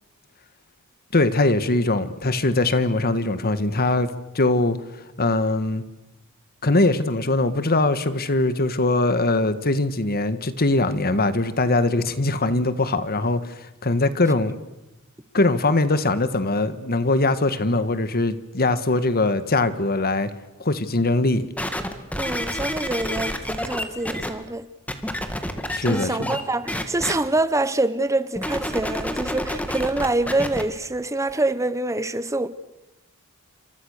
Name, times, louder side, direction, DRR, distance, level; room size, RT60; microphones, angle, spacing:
voice 1, 1.1-4.8 5.2-5.8 6.6-14.6 15.3-20.3 20.6-21.5 25.7-26.4, left 2 dB, 45° left, 1.7 m, -21 dB
sound 1, 21.6-24.3 24.9-26.4 26.7-27.1 28.4-30.6 31.3-31.4, left 1 dB, 5° left, 2.3 m, -28 dB
voice 2, 22.2-24.7 25.9-32.5, right 2 dB, 15° right, 0.9 m, -25 dB
28.5 x 26.0 x 6.7 m
head